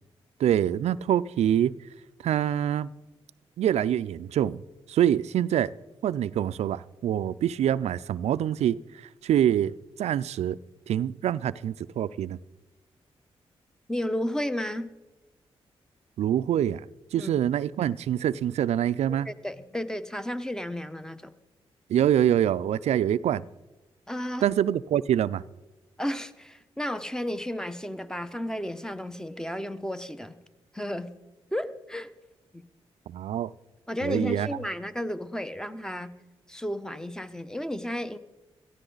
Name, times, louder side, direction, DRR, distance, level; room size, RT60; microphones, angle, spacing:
voice 1, 0.4-1.7 2.2-2.9 3.6-4.6 4.9-5.7 6.0-8.8 9.2-9.7 10.0-10.6 10.9-12.4 16.2-16.8 17.1-19.3 21.9-23.4 24.4-25.4 33.1-33.5 34.0-34.5, right 10 dB, 80° right, 0.4 m, -25 dB
voice 2, 13.9-14.9 17.2-17.3 19.2-21.3 24.1-24.5 26.0-30.4 30.7-31.1 31.5-32.1 32.5-32.6 33.9-36.1 36.5-38.2, left 1 dB, 5° left, 1.0 m, -33 dB
17.5 x 14.0 x 4.0 m
cardioid pair, 55°, 11 cm